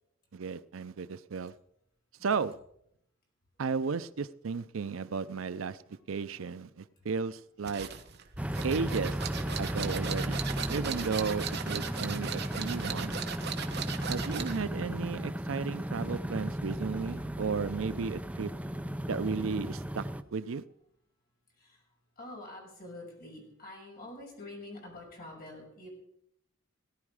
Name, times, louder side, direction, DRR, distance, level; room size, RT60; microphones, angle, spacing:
voice 1, 0.3-1.5 2.2-2.5 3.6-5.8 6.1-7.9 8.6-9.2 9.6-10.4 10.7-13.1 14.1-18.5 19.1-20.6, right 5 dB, 80° right, 0.5 m, -34 dB
voice 2, 2.2-2.5 5.9-6.0 6.3-6.4 7.7-8.6 16.0-16.1 21.5-25.9, left 2 dB, 45° left, 6.2 m, -48 dB
sound 1, 7.6-14.7, right 7 dB, 55° right, 1.1 m, -38 dB
sound 2, 8.4-20.2, right 1 dB, 5° right, 0.5 m, -35 dB
17.5 x 11.0 x 4.9 m
head